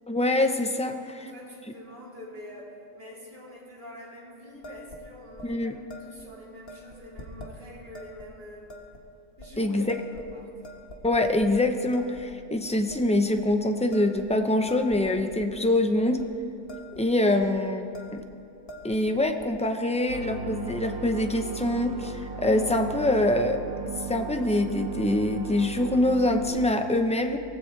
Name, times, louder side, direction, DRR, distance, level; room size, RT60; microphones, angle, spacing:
voice 1, 0.1-1.1 5.4-5.8 9.6-10.0 11.0-16.2 16.9-18.2 18.8-23.6 24.1-27.4, left 1 dB, 10° left, 5 dB, 0.3 m, -25 dB
voice 2, 0.9-5.7 6.0-8.7 9.4-10.5, left 1 dB, 40° right, -6 dB, 3.9 m, -46 dB
sound 1, 4.6-5.0 5.4-5.5 5.9-6.3 6.7-7.5 7.9-8.3 8.7-9.0 9.4-9.5 9.9-10.4 10.6-11.5 11.9-12.3 12.6-13.0 13.4-13.5 13.9-15.5 15.9-16.3 16.5-17.0 17.3-17.5 17.9-18.3 18.6-19.5, equal, 40° left, 1.7 m, -45 dB
sound 2, 20.1-26.4, right 5 dB, 70° right, 2.0 m, -36 dB
23.5 x 17.5 x 3.3 m, 2.7 s
omnidirectional pair, 1.6 m